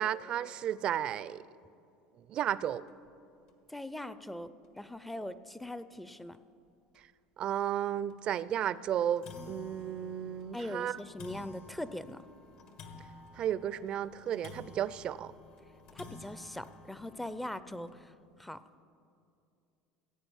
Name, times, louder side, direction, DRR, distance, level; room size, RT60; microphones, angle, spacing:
voice 1, 0.0-1.4 2.3-2.8 7.4-11.0 13.3-15.3, right 10 dB, 50° right, 18 dB, 0.4 m, -33 dB
sound 1, 2.9-3.1 3.5-3.6 4.0-4.1 5.2-5.3 5.8-5.9 6.3-6.4 7.0-7.1 8.1-8.3 8.7-8.8 9.0-18.1, left 3 dB, 60° left, 1.5 m, -52 dB
voice 2, 3.7-4.5 4.8-6.4 10.5-12.2 15.9-18.1 18.4-18.6, left 1 dB, 5° left, 14 dB, 0.5 m, -41 dB
15.5 x 8.6 x 7.1 m, 2.6 s
supercardioid pair, 100°, 2 cm